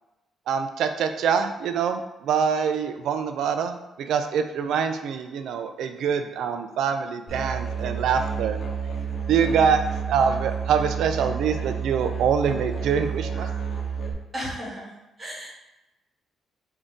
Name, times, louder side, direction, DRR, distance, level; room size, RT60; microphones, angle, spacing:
voice 1, 0.5-8.6 9.3-9.8 10.1-13.5, right 7 dB, 75° right, 7 dB, 0.3 m, -25 dB
Musical instrument, 7.3-14.1, right 6 dB, 50° left, 1.1 m, -30 dB
voice 2, 14.3-15.5, equal, 25° right, -6 dB, 1.5 m, -36 dB
3.6 x 2.6 x 3.6 m, 1.0 s
cardioid pair, 90°, 0 cm